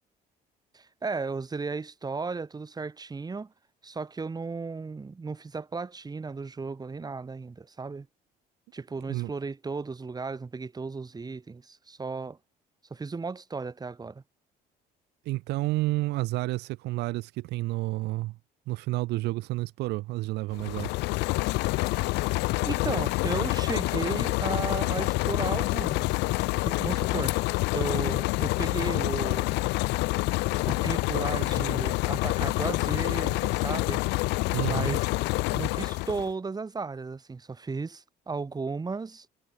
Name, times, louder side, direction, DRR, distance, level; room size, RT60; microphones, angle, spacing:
voice 1, 0.7-3.5 3.8-8.1 8.7-12.4 12.9-14.2 22.1-26.2 26.6-27.4 27.7-29.6 30.7-34.0 34.7-35.1 35.5-39.3, right 4 dB, 25° right, 3.8 m, -35 dB
voice 2, 9.0-9.3 15.3-18.4 18.7-20.9 34.5-35.0, right 19 dB, 80° right, 0.8 m, -30 dB
sound 1, 20.5-36.3, left 22 dB, 85° left, 0.5 m, -27 dB
cardioid pair, 110°, 17 cm